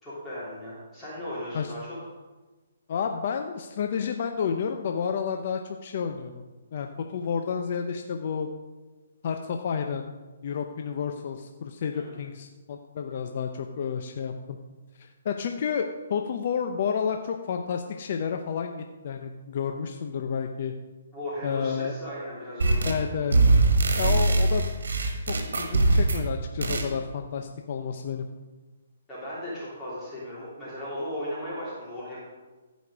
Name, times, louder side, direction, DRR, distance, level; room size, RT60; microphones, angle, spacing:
voice 1, 0.0-2.0 11.9-12.2 21.1-22.9 29.1-32.2, left 1 dB, 10° left, -10 dB, 3.5 m, -36 dB
voice 2, 2.9-8.5 9.2-10.1 10.4-14.6 15.0-20.7 21.4-21.9 22.9-23.4 24.0-24.7 25.3-28.3, left 7 dB, 50° left, 5 dB, 0.6 m, -30 dB
sound 1, 22.6-23.0 23.3-26.3 26.6-26.9, right 2 dB, 80° right, 1.6 m, -22 dB
15.5 x 5.2 x 5.0 m, 1.3 s
hypercardioid pair, 150°, 0 cm